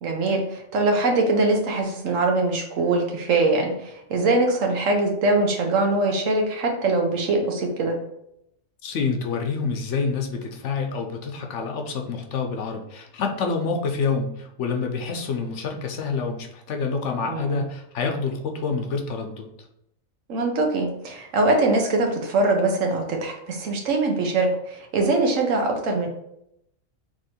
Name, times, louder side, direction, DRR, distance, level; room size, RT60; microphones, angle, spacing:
voice 1, 0.0-8.0 17.3-17.6 20.3-26.1, right 2 dB, 75° right, 2 dB, 1.2 m, -22 dB
voice 2, 8.8-19.7, left 4 dB, 65° left, 3 dB, 0.9 m, -27 dB
3.6 x 2.9 x 4.2 m, 0.77 s
omnidirectional pair, 1.4 m